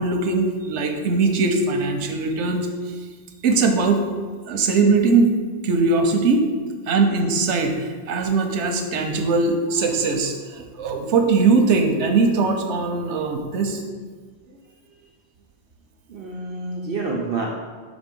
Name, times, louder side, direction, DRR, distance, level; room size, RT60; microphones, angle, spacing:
voice 1, 0.0-2.7 3.4-4.0 4.5-5.3 5.6-6.5 6.9-13.8, right 4 dB, 90° right, 4 dB, 1.0 m, -20 dB
voice 2, 16.1-17.5, right 3 dB, 55° right, -2 dB, 0.9 m, -28 dB
5.3 x 4.1 x 5.2 m, 1.5 s
omnidirectional pair, 1.2 m